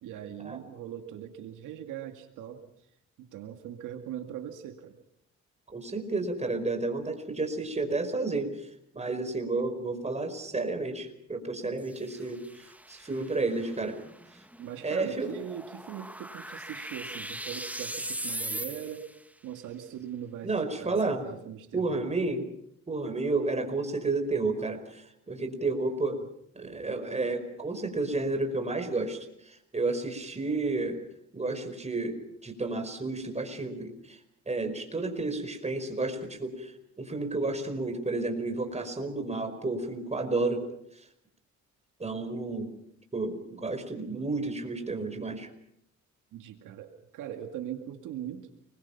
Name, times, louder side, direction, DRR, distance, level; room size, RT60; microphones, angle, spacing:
voice 1, 0.0-2.7 3.2-5.0 14.6-19.1 19.4-22.1 46.3-48.5, right 10 dB, 85° right, 6 dB, 2.2 m, -40 dB
voice 2, 5.7-14.0 14.8-15.3 20.4-21.3 21.7-22.5 22.9-26.2 26.5-31.0 31.3-32.2 32.4-34.2 34.5-40.7 42.0-42.7 43.1-45.5, right 3 dB, 20° right, 6 dB, 5.0 m, -31 dB
sound 1, 11.8-19.2, right 1 dB, 5° right, 1.4 m, -40 dB
30.0 x 22.0 x 5.9 m, 0.76 s
cardioid pair, 90°, 30 cm